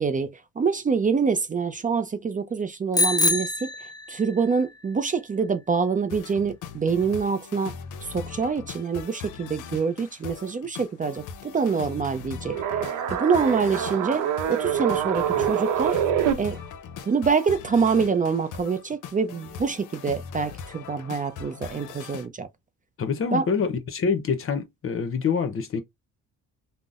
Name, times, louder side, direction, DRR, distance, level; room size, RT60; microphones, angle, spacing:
voice 1, 0.0-3.7 4.1-7.7 8.0-12.6 13.1-16.0 16.4-16.6 17.1-22.5 23.3-23.5, right 5 dB, 25° right, 0.4 m, -25 dB
Bicycle bell, 2.9-4.5, left 2 dB, 10° left, 0.7 m, -25 dB
sound 1, 6.1-22.3, left 6 dB, 80° left, 0.6 m, -40 dB
sound 2, 12.5-16.3, right 9 dB, 90° right, 0.7 m, -25 dB
voice 2, 23.0-25.8, left 5 dB, 45° left, 0.7 m, -26 dB
3.8 x 2.1 x 2.4 m
cardioid pair, 90°, 30 cm